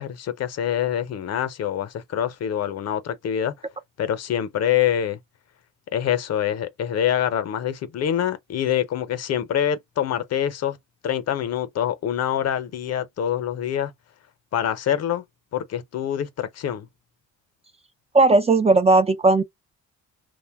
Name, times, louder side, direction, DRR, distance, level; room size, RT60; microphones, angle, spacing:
voice 1, 0.0-3.5 4.0-5.2 5.9-10.8 11.0-13.9 14.5-15.2 15.5-16.9, left 10 dB, 55° left, 0.6 m, -25 dB
voice 2, 18.1-19.4, right 3 dB, 20° right, 0.4 m, -16 dB
2.4 x 2.1 x 3.3 m
cardioid pair, 90°, 30 cm